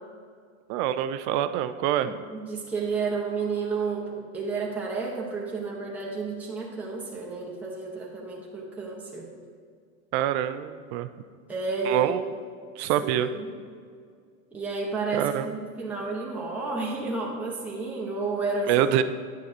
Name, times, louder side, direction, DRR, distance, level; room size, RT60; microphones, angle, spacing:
voice 1, 0.7-2.1 10.1-11.1 11.9-12.2 12.8-13.3 15.2-15.5 18.7-19.0, right 11 dB, 55° right, 12 dB, 0.5 m, -25 dB
voice 2, 2.0-9.3 11.5-12.1 13.0-13.6 14.5-18.8, right 4 dB, 5° right, -4 dB, 1.0 m, -31 dB
9.4 x 6.4 x 2.8 m, 2.1 s
hypercardioid pair, 105°, 40 cm